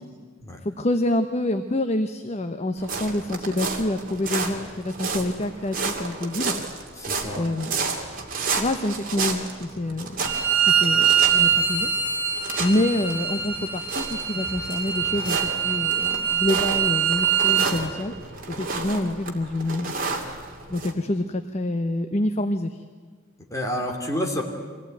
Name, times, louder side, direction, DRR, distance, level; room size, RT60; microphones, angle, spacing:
voice 1, 0.6-6.6 7.3-7.7 8.6-10.2 10.6-11.9 12.6-18.1 18.5-19.9 20.7-22.8, left 1 dB, 35° left, 8 dB, 0.8 m, -27 dB
sound 1, 2.8-20.9, right 4 dB, 45° right, 2.5 m, -32 dB
voice 2, 7.0-7.5 23.5-24.4, left 1 dB, 15° left, 1 dB, 2.7 m, -29 dB
Bowed string instrument, 10.2-17.7, right 8 dB, 10° right, 3.2 m, -23 dB
24.5 x 16.5 x 9.2 m, 1.5 s
head